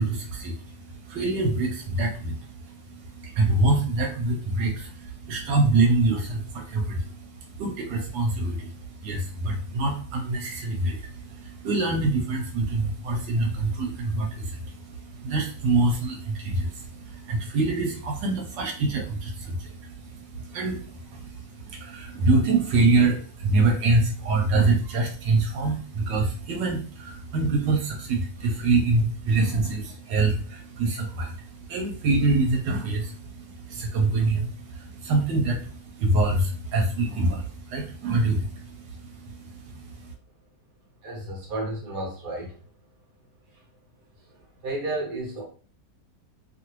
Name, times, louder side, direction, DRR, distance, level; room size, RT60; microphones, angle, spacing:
voice 1, 0.0-40.1, right 2 dB, 90° right, 1 dB, 1.3 m, -25 dB
voice 2, 41.0-42.5 44.6-45.4, right 2 dB, 55° right, -3 dB, 0.6 m, -31 dB
2.8 x 2.5 x 2.9 m, 0.41 s
omnidirectional pair, 1.9 m